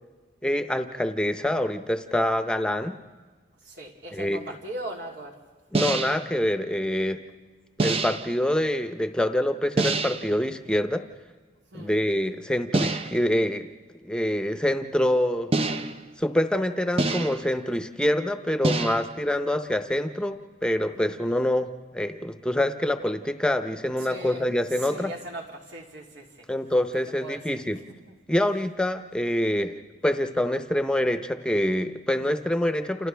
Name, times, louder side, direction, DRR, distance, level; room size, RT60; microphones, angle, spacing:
voice 1, 0.4-3.0 4.1-4.4 5.7-7.2 7.8-11.0 11.7-13.7 14.0-15.5 16.2-25.1 26.5-27.8 28.3-29.8 30.0-33.1, left 1 dB, 5° left, 0.8 m, -26 dB
voice 2, 3.6-5.4 11.7-12.0 20.9-21.2 24.0-26.5 26.9-28.2, right 1 dB, 80° right, 3.2 m, -40 dB
sound 1, 5.7-6.3 7.8-8.4 9.8-10.3 12.7-13.3 15.5-16.1 17.0-17.6 18.6-19.2, right 3 dB, 30° right, 0.6 m, -26 dB
29.5 x 28.5 x 3.4 m
head